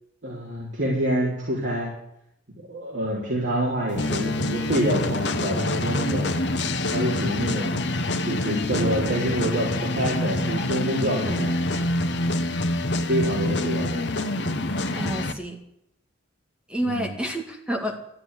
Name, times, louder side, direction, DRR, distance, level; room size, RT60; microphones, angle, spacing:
voice 1, 0.2-1.9 2.6-6.3 6.9-7.8 8.2-11.6 13.1-14.1 16.8-17.1, right 1 dB, 65° right, -5 dB, 4.0 m, -27 dB
sound 1, 4.0-15.3, left 1 dB, 55° left, 1.1 m, -26 dB
voice 2, 15.0-15.6 16.7-18.0, right 1 dB, 5° right, 2 dB, 2.1 m, -29 dB
14.0 x 9.3 x 9.6 m, 0.78 s
head